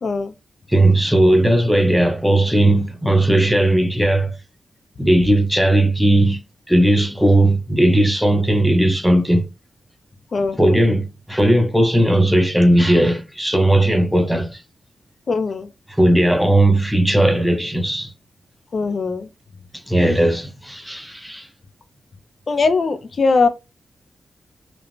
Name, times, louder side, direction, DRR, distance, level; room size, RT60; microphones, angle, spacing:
voice 1, 0.0-0.3 10.3-10.8 15.3-15.7 18.7-19.3 22.5-23.5, left 4 dB, 55° left, 0.4 m, -20 dB
voice 2, 0.7-4.4 5.0-6.4 6.7-9.5 10.6-14.6 15.9-18.1 19.9-21.5, right 1 dB, ahead, 0.6 m, -16 dB
3.0 x 2.1 x 2.5 m
cardioid pair, 90°, 0 cm